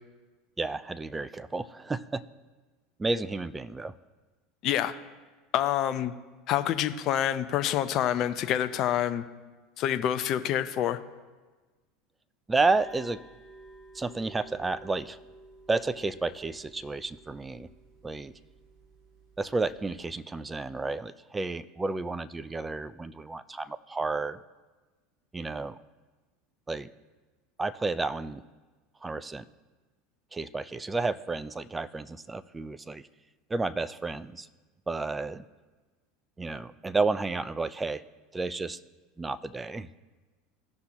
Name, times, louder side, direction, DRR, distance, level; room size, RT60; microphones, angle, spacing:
voice 1, 0.6-2.2 3.0-3.9 12.5-13.2 13.9-15.2 15.7-17.7 18.0-18.3 19.4-24.4 25.3-25.8 26.7-26.9 27.6-28.5 29.0-29.5 30.3-33.0 33.5-34.5 34.9-35.4 36.4-38.0 38.3-38.8 39.2-40.0, right 3 dB, 15° right, 16 dB, 0.5 m, -31 dB
voice 2, 5.5-6.1 6.5-9.2 9.8-11.0, left 11 dB, 50° left, 10 dB, 0.6 m, -27 dB
sound 1, 12.6-20.1, right 2 dB, 45° right, 2.2 m, -52 dB
17.0 x 5.8 x 2.9 m, 1.3 s
hypercardioid pair, 80°, 0 cm